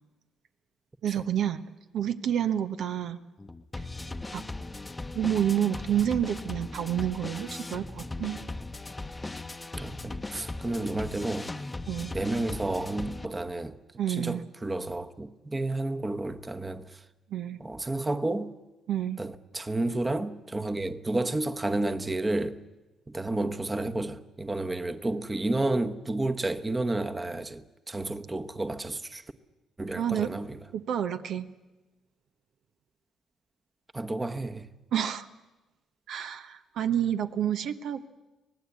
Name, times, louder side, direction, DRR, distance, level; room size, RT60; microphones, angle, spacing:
voice 1, 1.0-1.6 1.9-3.2 4.3-4.4 5.1-8.4 11.9-12.2 14.0-14.4 17.3-17.6 18.9-19.2 30.0-30.3 30.7-31.5 34.9-35.3 36.1-38.1, right 10 dB, 75° right, 1.0 m, -29 dB
sound 1, 3.4-13.3, left 2 dB, 20° left, 0.9 m, -38 dB
voice 2, 9.8-11.5 12.1-13.8 14.1-17.0 17.6-18.5 19.2-22.6 23.1-29.2 29.8-30.6 33.9-34.7, right 2 dB, 20° right, 1.1 m, -31 dB
25.0 x 18.5 x 8.4 m
cardioid pair, 90°, 0 cm